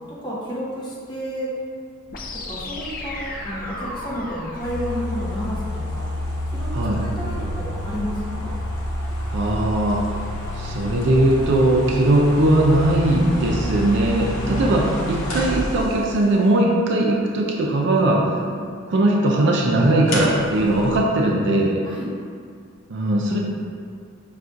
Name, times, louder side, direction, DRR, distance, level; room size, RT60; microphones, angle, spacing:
voice 1, 0.0-1.5 2.3-6.1 6.5-8.5 18.3-18.7 20.6-20.7 21.8-22.1, equal, 20° left, -8 dB, 0.9 m, -31 dB
sound 1, 2.1-6.1, left 2 dB, 40° left, 0.3 m, -35 dB
sound 2, 4.6-16.3 20.1-21.0, left 1 dB, 75° left, 0.7 m, -28 dB
voice 2, 9.3-10.0 10.6-18.2 18.9-21.8 22.9-23.4, right 1 dB, 55° right, -1 dB, 0.4 m, -19 dB
5.5 x 2.4 x 2.5 m, 2.2 s
head